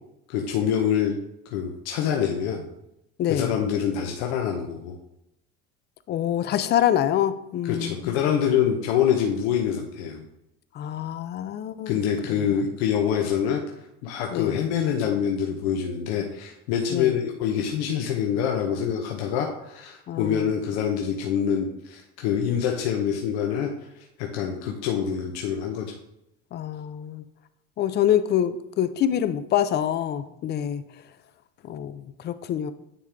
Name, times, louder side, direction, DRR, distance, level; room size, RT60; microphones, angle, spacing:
voice 1, 0.3-1.2 1.4-2.6 3.3-5.0 7.6-10.3 11.9-13.6 14.0-25.9, left 8 dB, 80° left, 1 dB, 0.9 m, -25 dB
voice 2, 3.2-3.5 6.1-8.1 10.8-12.0 14.3-14.6 16.9-17.1 20.1-20.5 26.5-27.2 27.8-30.8 31.6-32.7, left 10 dB, 35° left, 13 dB, 0.4 m, -26 dB
9.5 x 3.6 x 3.5 m, 0.85 s
supercardioid pair, 120°, 31 cm